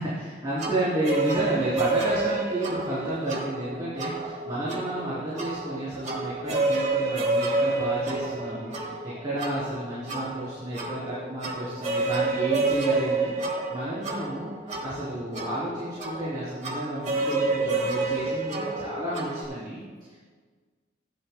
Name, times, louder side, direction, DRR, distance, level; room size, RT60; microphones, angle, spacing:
voice 1, 0.0-19.8 20.1-20.2, right 1 dB, 25° right, -10 dB, 3.1 m, -31 dB
sound 1, 0.6-19.4, right 3 dB, 40° right, 1.7 m, -29 dB
16.0 x 11.0 x 2.2 m, 1.5 s
head